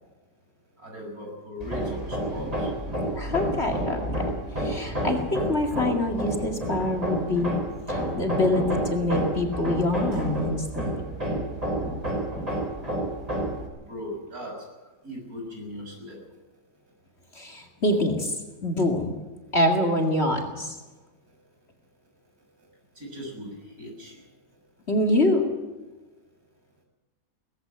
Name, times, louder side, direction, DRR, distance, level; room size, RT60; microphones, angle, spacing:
voice 1, 0.8-2.7 13.9-14.5 15.0-16.2 22.9-24.2, left 1 dB, 60° right, 0 dB, 6.8 m, -38 dB
Hammer, 1.6-13.7, right 1 dB, 20° right, 4.8 m, -30 dB
voice 2, 3.1-7.5 7.9-11.0 17.3-19.2 19.5-20.8 24.9-25.5, left 1 dB, 40° left, 3 dB, 2.5 m, -25 dB
18.5 x 16.0 x 9.0 m, 1.2 s
omnidirectional pair, 1.8 m